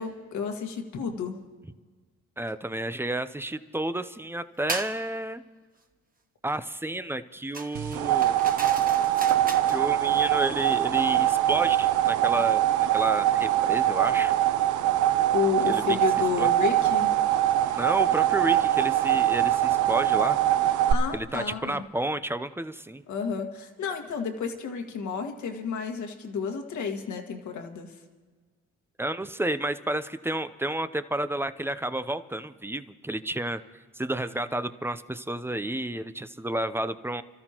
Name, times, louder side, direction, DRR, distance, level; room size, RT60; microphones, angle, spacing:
voice 1, 0.0-1.4 15.3-17.1 20.9-21.8 23.1-28.0, left 6 dB, 70° left, 4 dB, 1.8 m, -31 dB
voice 2, 2.4-5.4 6.4-8.4 9.7-12.6 12.9-14.4 15.7-15.8 16.4-16.5 17.8-20.4 21.1-23.0 29.0-33.6 34.0-37.2, right 1 dB, 10° right, 12 dB, 0.6 m, -31 dB
sound 1, 4.7-5.0 7.5-9.8, right 3 dB, 30° right, 1.4 m, -36 dB
sound 2, 7.7-20.9, right 12 dB, 80° right, 0.7 m, -23 dB
29.0 x 13.5 x 3.0 m, 1.4 s
cardioid pair, 90°, 30 cm